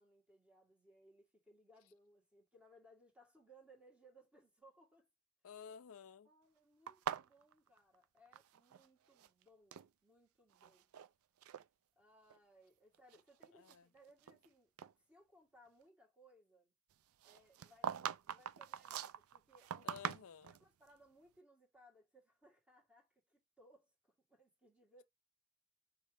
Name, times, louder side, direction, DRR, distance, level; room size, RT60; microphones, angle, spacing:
voice 1, 0.0-5.1 6.2-10.9 12.0-14.7 15.0-16.7 17.2-19.9 20.5-25.0, right 1 dB, 5° right, 1.8 m, -66 dB
voice 2, 5.4-6.3 13.5-13.9 19.8-20.6, left 7 dB, 65° left, 0.5 m, -53 dB
sound 1, 6.9-8.9 9.1-9.9 10.5-11.1 11.4-11.6 12.3-12.4 12.9-14.5 14.8-14.9 17.2-20.6, right 9 dB, 70° right, 0.4 m, -44 dB
4.9 x 3.2 x 3.3 m
head